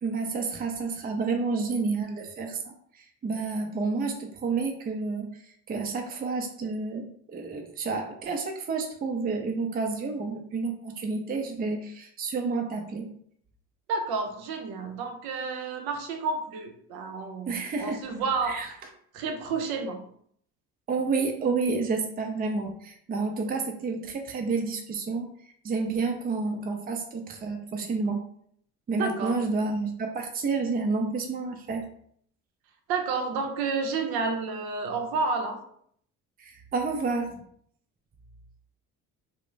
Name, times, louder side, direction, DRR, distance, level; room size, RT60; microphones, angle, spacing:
voice 1, 0.0-2.7 3.2-5.3 5.7-13.1 17.5-18.0 18.5-18.7 20.9-25.3 25.6-28.2 28.9-31.9 36.4-37.4, right 4 dB, 25° right, 3 dB, 0.4 m, -30 dB
voice 2, 13.9-18.7 19.1-20.0 29.0-29.3 32.9-35.6, right 4 dB, 75° right, 4 dB, 0.6 m, -30 dB
2.4 x 2.1 x 3.1 m, 0.65 s
supercardioid pair, 80°, 38 cm